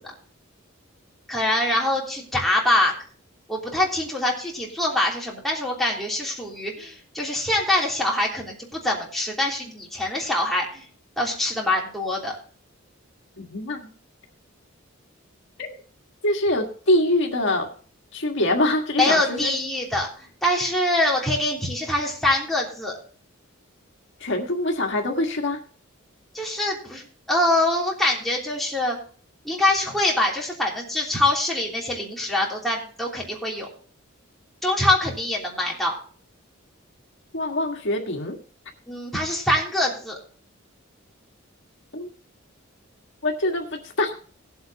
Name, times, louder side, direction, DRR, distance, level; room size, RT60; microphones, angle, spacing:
voice 1, 1.3-2.9 3.5-10.8 11.2-12.4 19.0-20.1 20.4-22.9 26.3-29.0 29.4-33.7 34.6-35.9 38.9-40.2, left 1 dB, ahead, -3 dB, 3.2 m, -24 dB
voice 2, 13.4-13.9 15.6-15.7 16.2-17.7 18.1-19.5 24.2-25.6 37.3-38.4 41.9-42.1 43.2-44.1, left 1 dB, 60° left, 2 dB, 1.8 m, -24 dB
19.0 x 7.9 x 2.9 m, 0.43 s
head